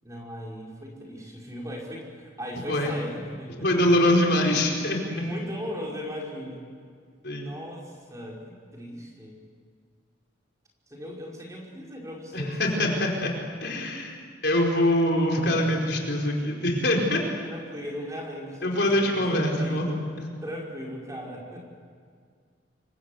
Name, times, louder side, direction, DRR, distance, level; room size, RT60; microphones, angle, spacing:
voice 1, 0.0-4.5 5.1-6.7 7.4-9.4 10.9-13.1 17.4-20.0 20.4-21.7, equal, 15° right, -2 dB, 5.3 m, -38 dB
voice 2, 3.6-5.0 7.2-7.5 12.3-13.3 13.6-14.1 14.4-17.2 18.6-20.0, left 1 dB, 60° left, 1 dB, 4.7 m, -23 dB
27.0 x 24.5 x 8.0 m, 2.1 s
head